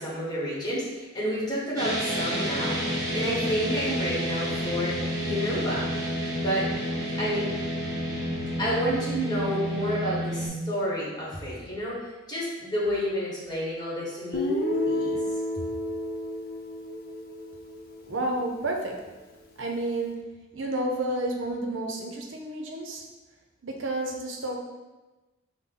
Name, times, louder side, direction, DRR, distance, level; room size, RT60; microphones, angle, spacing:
voice 1, 0.0-5.9 6.4-6.7 7.2-7.5 8.6-12.0 12.3-14.5 14.8-15.2, equal, 20° left, -7 dB, 1.3 m, -30 dB
sound 1, 1.8-10.5, equal, 15° right, 1.0 m, -30 dB
Guitar, 14.3-18.3, left 1 dB, 50° left, 0.6 m, -30 dB
voice 2, 18.1-19.0 19.6-20.2 20.5-23.0 23.6-24.5, right 1 dB, 65° right, 1 dB, 0.7 m, -30 dB
5.5 x 2.2 x 3.8 m, 1.1 s
head